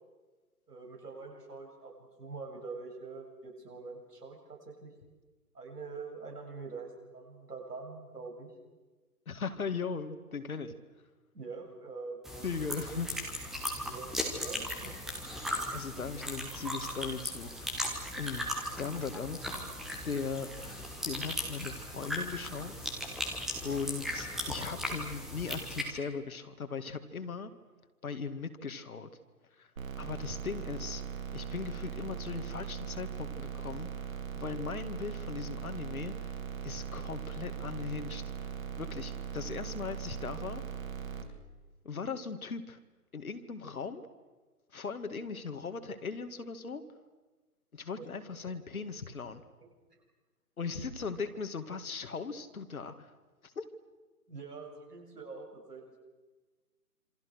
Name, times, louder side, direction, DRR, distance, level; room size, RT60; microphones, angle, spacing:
voice 1, 0.7-1.9 2.2-4.9 5.5-8.5 11.3-12.8 13.8-14.9 48.4-48.5 54.3-56.0, right 4 dB, 75° right, 1 dB, 7.6 m, -45 dB
voice 2, 9.3-10.7 12.4-13.2 15.3-17.9 18.2-18.5 18.8-19.4 20.0-22.9 23.6-27.5 28.0-29.1 29.6-29.7 30.0-31.0 31.3-36.4 36.6-38.5 38.8-40.6 41.8-42.8 43.1-44.0 44.7-46.8 47.7-49.4 50.6-53.1 53.4-53.6, left 5 dB, 60° left, 8 dB, 2.3 m, -38 dB
sound 1, 12.2-25.8, equal, ahead, 0.8 m, -37 dB
sound 2, 29.8-41.2, right 7 dB, 55° right, 3.4 m, -40 dB
27.5 x 26.0 x 6.4 m, 1.3 s
figure-of-eight pair, 140°, 47 cm